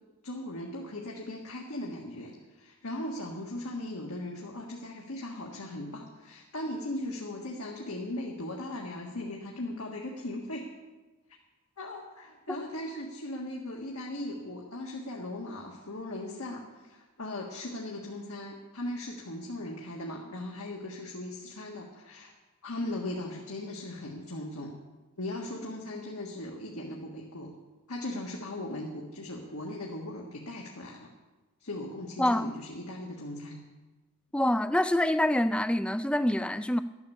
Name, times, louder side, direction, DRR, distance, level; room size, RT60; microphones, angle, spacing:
voice 1, 0.2-10.7 11.8-22.3 22.6-24.8 25.2-27.5 27.9-31.1 31.6-33.6, left 1 dB, 80° left, 1.6 m, -38 dB
voice 2, 32.2-32.5 34.3-36.8, left 1 dB, 5° left, 0.3 m, -26 dB
12.0 x 10.5 x 7.0 m
head